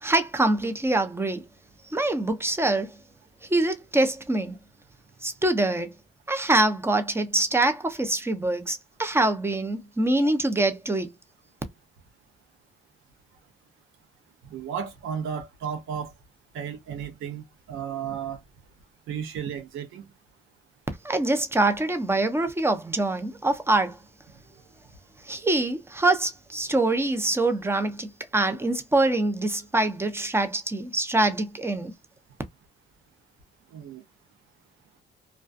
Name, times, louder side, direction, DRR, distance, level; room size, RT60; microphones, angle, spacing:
voice 1, 0.0-1.4 1.9-2.9 3.5-4.5 5.2-5.9 6.3-11.1 21.0-24.0 25.3-28.1 28.3-31.9, right 2 dB, 10° right, 0.6 m, -24 dB
voice 2, 14.5-16.1 16.5-18.4 19.1-20.1 33.7-34.0, right 8 dB, 85° right, 0.8 m, -34 dB
2.4 x 2.2 x 2.5 m
cardioid pair, 90°, 20 cm